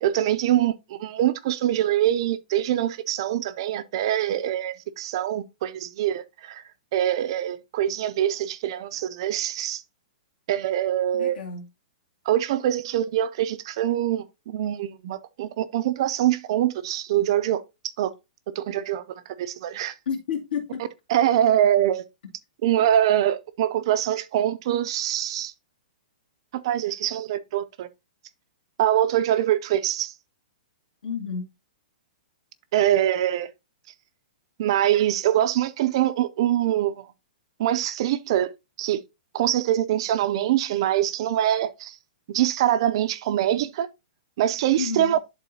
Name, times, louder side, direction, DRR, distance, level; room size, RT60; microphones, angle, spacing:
voice 1, 0.0-6.6 6.9-9.8 10.5-11.4 12.3-17.6 18.0-18.1 18.6-19.0 19.4-19.9 21.1-22.0 22.6-25.5 26.5-27.9 28.8-30.1 32.7-33.5 34.6-37.0 37.6-38.5 38.8-39.0 39.3-42.0 42.3-43.9 44.4-45.2, right 12 dB, 35° right, 0.4 m, -24 dB
voice 2, 11.1-11.7 20.1-20.8 22.2-22.3 31.0-31.5 44.7-45.2, left 6 dB, 75° left, 2.3 m, -31 dB
11.0 x 3.8 x 2.7 m
hypercardioid pair, 175°, 5 cm